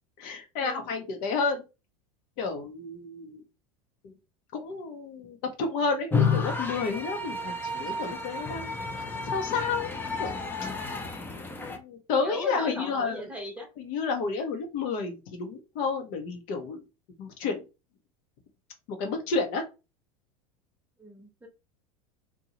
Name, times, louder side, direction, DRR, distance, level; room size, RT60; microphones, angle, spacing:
voice 1, 0.2-1.6 2.4-3.4 4.5-8.8 9.2-10.4 11.7-13.2 13.8-16.8 17.2-17.6 18.9-19.7, left 4 dB, 50° left, 5 dB, 0.8 m, -31 dB
sound 1, 6.1-11.8, left 4 dB, 10° left, 0.6 m, -31 dB
voice 2, 12.2-13.7 21.0-21.5, equal, 5° right, 2 dB, 0.9 m, -39 dB
2.6 x 2.3 x 2.9 m, 0.28 s
hypercardioid pair, 85°, 18 cm